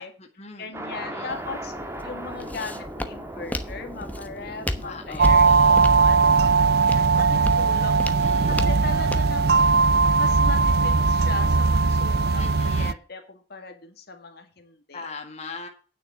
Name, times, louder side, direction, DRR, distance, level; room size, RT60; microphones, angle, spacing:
voice 1, 0.0-1.5 4.8-6.0 8.0-8.6 12.4-12.9 14.9-15.7, left 4 dB, 40° left, 2 dB, 1.9 m, -40 dB
voice 2, 0.6-1.7 2.0-8.1 8.5-9.8 10.1-15.1, left 3 dB, 60° left, 6 dB, 2.0 m, -38 dB
sound 1, 0.7-8.3, right 1 dB, 15° right, 1.6 m, -39 dB
Walk footsteps, 1.3-9.4, left 1 dB, 10° left, 1.0 m, -34 dB
sound 2, 5.2-12.9, right 4 dB, 60° right, 0.5 m, -19 dB
9.3 x 6.8 x 7.3 m, 0.38 s
head